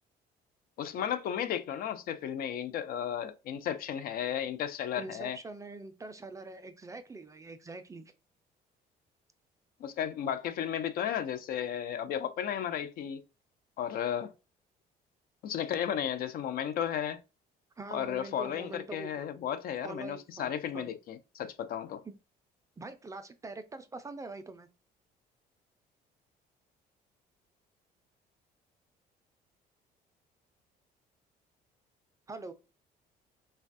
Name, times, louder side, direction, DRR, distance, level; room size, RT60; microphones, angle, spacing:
voice 1, 0.8-5.4 9.8-13.2 13.8-14.3 15.4-17.2 17.9-22.0, left 9 dB, 60° left, 0.4 m, -34 dB
voice 2, 5.0-8.0 17.8-19.3 19.8-21.0 22.0-22.1 22.8-24.7 32.3-32.5, right 3 dB, 20° right, 0.4 m, -44 dB
3.2 x 2.2 x 2.5 m
cardioid pair, 110°, 17 cm